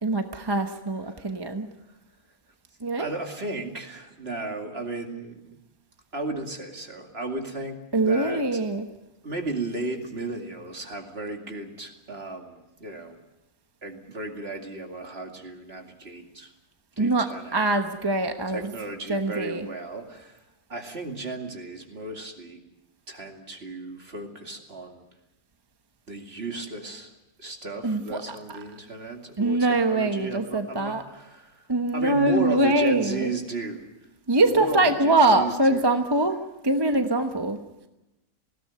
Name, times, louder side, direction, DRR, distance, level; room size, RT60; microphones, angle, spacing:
voice 1, 0.0-1.7 2.8-3.1 7.9-8.9 17.0-18.7 19.1-19.7 27.8-28.2 29.4-31.0 31.7-33.3 34.3-36.4 36.6-37.6, right 2 dB, 20° right, 6 dB, 0.9 m, -23 dB
voice 2, 3.0-5.5 6.1-8.6 9.2-13.2 13.8-16.5 17.0-17.6 18.5-20.4 20.7-22.6 23.1-25.0 26.1-27.1 27.4-31.7 31.9-33.9 34.4-35.9, right 2 dB, 45° right, 3 dB, 2.6 m, -35 dB
20.0 x 16.5 x 9.4 m, 0.97 s
omnidirectional pair, 1.5 m